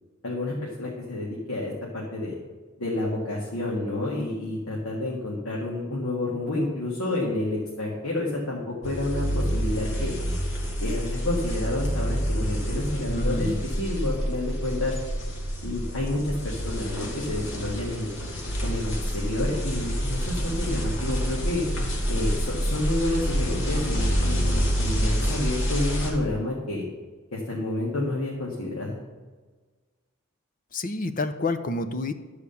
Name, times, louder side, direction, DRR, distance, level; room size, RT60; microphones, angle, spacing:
voice 1, 0.2-2.3 2.8-10.1 10.8-13.5 13.8-14.9 15.6-18.1 18.6-21.7 22.1-26.8 27.3-29.0, left 2 dB, 75° left, -5 dB, 1.8 m, -29 dB
sound 1, 8.8-26.1, equal, 55° left, 2.1 m, -27 dB
voice 2, 13.1-13.6 30.7-32.1, left 2 dB, 40° left, 10 dB, 0.6 m, -28 dB
12.0 x 4.9 x 6.9 m, 1.3 s
head